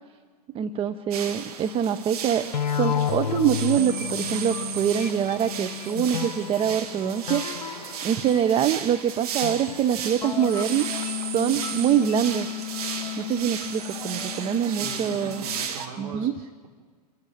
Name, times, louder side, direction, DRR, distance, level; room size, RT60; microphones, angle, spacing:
voice 1, 0.5-2.5 2.7-10.9 11.2-12.5 13.2-15.4 16.0-16.3, right 9 dB, 25° right, 10 dB, 0.8 m, -25 dB
sound 1, 1.1-15.9, right 7 dB, 65° right, 2.1 m, -35 dB
sound 2, 2.5-8.7 9.4-15.7, left 9 dB, 80° left, 0.7 m, -32 dB
voice 2, 14.6-16.7, right 4 dB, 45° right, 0 dB, 5.3 m, -40 dB
27.0 x 14.5 x 9.0 m, 1.5 s
hypercardioid pair, 105°, 21 cm